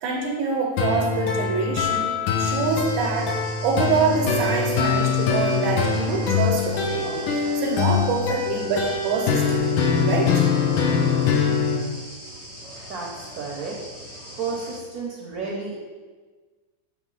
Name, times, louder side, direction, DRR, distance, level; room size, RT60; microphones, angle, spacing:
voice 1, 0.0-10.5, right 5 dB, 80° right, 0 dB, 1.5 m, -26 dB
sound 1, 0.8-11.8, left 6 dB, 85° left, 1.5 m, -23 dB
sound 2, 2.4-14.8, equal, 65° left, 2.1 m, -40 dB
sound 3, 8.7-10.1 10.9-11.0, equal, 20° left, 0.3 m, -41 dB
voice 2, 12.9-13.8 14.4-15.8, right 4 dB, 65° right, -2 dB, 1.0 m, -32 dB
7.3 x 3.4 x 3.8 m, 1.4 s
omnidirectional pair, 2.2 m